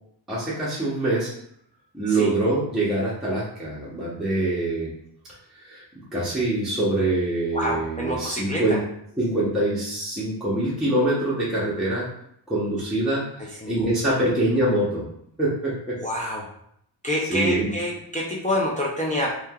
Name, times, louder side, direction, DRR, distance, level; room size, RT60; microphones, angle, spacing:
voice 1, 0.3-1.3 1.9-4.9 5.6-5.8 6.1-8.8 9.2-12.1 12.5-15.1 15.4-16.0 17.3-17.7, right 1 dB, ahead, -8 dB, 0.7 m, -24 dB
voice 2, 7.5-8.8 13.4-13.7 14.1-14.2 16.0-16.5 17.0-19.4, left 1 dB, 20° left, -4 dB, 0.4 m, -27 dB
3.1 x 2.8 x 2.3 m, 0.70 s
wide cardioid pair, 110°, 47 cm